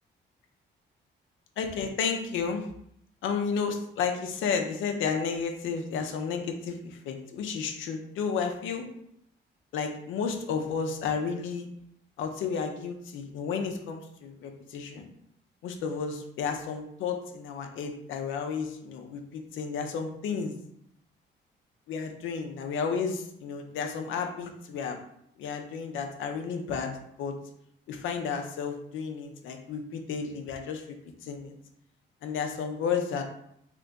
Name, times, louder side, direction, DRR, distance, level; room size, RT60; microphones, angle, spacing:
voice 1, 1.6-2.7 3.2-8.9 9.7-11.7 12.2-15.1 15.6-20.5 21.9-25.0 25.4-26.9 27.2-27.3 27.9-30.8 31.2-31.5 32.2-33.2, left 6 dB, 80° left, 4 dB, 0.5 m, -32 dB
2.9 x 2.6 x 3.4 m, 0.73 s
cardioid pair, 90°, 20 cm